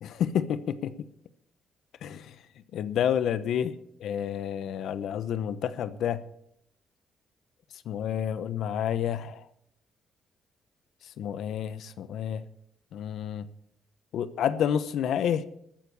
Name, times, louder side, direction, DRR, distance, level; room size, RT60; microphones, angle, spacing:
voice 1, 0.0-0.9 2.0-2.3 2.7-3.7 4.0-6.2 7.9-9.5 11.2-12.4 12.9-13.5 14.1-15.5, left 9 dB, 75° left, 14 dB, 0.8 m, -29 dB
13.5 x 9.3 x 6.8 m, 0.73 s
cardioid pair, 90°, 0 cm